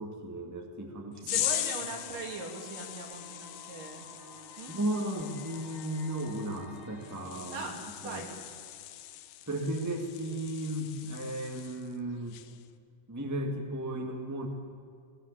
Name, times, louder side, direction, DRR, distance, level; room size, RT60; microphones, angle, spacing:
voice 1, 0.0-1.4 4.7-7.6 8.0-8.2 9.5-12.4 13.1-14.5, right 1 dB, 5° right, 2 dB, 1.7 m, -35 dB
voice 2, 1.2-4.1 4.6-4.8 7.5-8.3, right 3 dB, 80° right, 1 dB, 4.4 m, -40 dB
sound 1, 1.3-12.0 12.3-12.7, left 13 dB, 80° left, 2.3 m, -40 dB
sound 2, 1.6-9.6, left 4 dB, 50° left, 3.3 m, -53 dB
18.5 x 18.0 x 8.5 m, 2.4 s
omnidirectional pair, 3.7 m